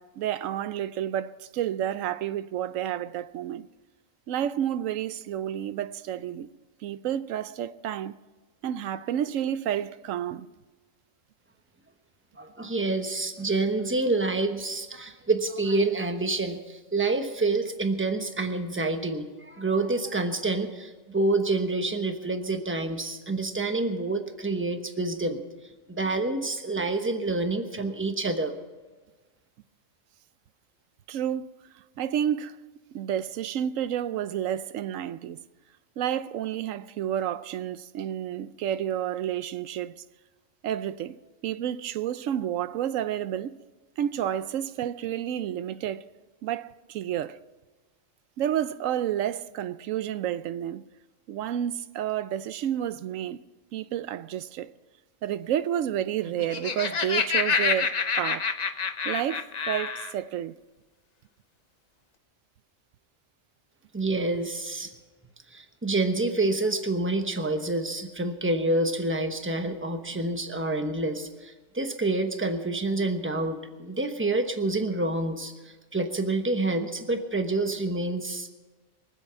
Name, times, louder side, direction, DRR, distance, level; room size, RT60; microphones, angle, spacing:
voice 1, 0.0-3.7 4.3-6.5 6.8-8.1 8.6-10.5 31.1-31.5 32.0-32.6 32.9-35.4 36.0-39.9 40.6-43.6 44.0-46.0 46.4-47.4 48.4-50.8 51.3-53.4 53.7-54.7 55.2-58.5 59.0-60.5, right 10 dB, 85° right, 1.0 m, -30 dB
voice 2, 12.4-25.4 25.9-28.5 63.9-64.9 65.5-78.5, right 2 dB, 10° right, 1.0 m, -28 dB
Laughter, 56.3-60.1, left 5 dB, 40° left, 0.7 m, -27 dB
23.5 x 8.1 x 5.7 m
omnidirectional pair, 1.3 m